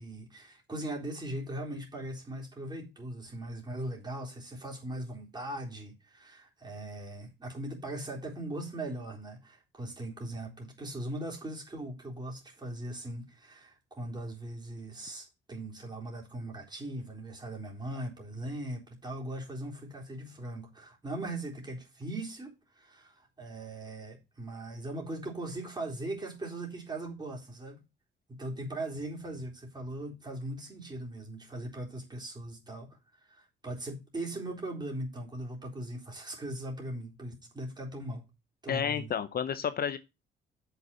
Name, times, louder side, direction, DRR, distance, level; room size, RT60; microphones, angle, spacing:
voice 1, 0.0-27.8 28.3-38.3 38.6-39.1, right 1 dB, 20° right, 3.9 m, -39 dB
voice 2, 38.7-40.0, left 8 dB, 50° left, 0.8 m, -31 dB
7.6 x 5.9 x 6.8 m
cardioid pair, 90°, 20 cm